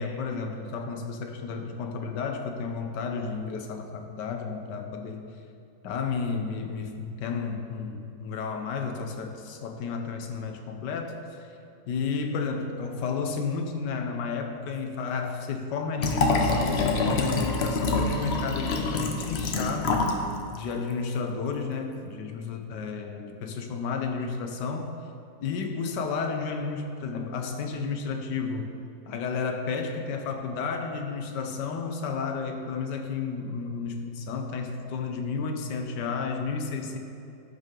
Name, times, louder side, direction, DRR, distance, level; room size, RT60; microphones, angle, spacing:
voice 1, 0.0-5.2 5.8-11.5 11.9-20.0 20.5-25.0 25.4-28.7 29.1-37.0, left 5 dB, 70° left, 4 dB, 1.4 m, -32 dB
Liquid, 16.0-20.2 20.5-20.6, left 3 dB, 55° left, 0.7 m, -26 dB
13.5 x 5.6 x 3.7 m, 2.7 s
omnidirectional pair, 2.0 m